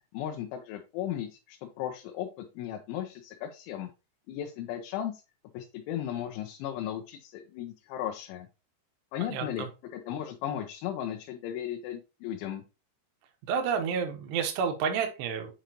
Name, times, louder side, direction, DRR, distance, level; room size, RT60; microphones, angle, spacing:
voice 1, 0.1-2.3 2.6-3.9 4.3-5.1 5.5-8.5 9.1-9.7 9.9-12.6, left 11 dB, 90° left, 4 dB, 3.2 m, -36 dB
voice 2, 9.2-9.7 13.5-15.5, right 6 dB, 75° right, 5 dB, 3.0 m, -30 dB
7.9 x 5.1 x 2.9 m, 0.29 s
omnidirectional pair, 5.3 m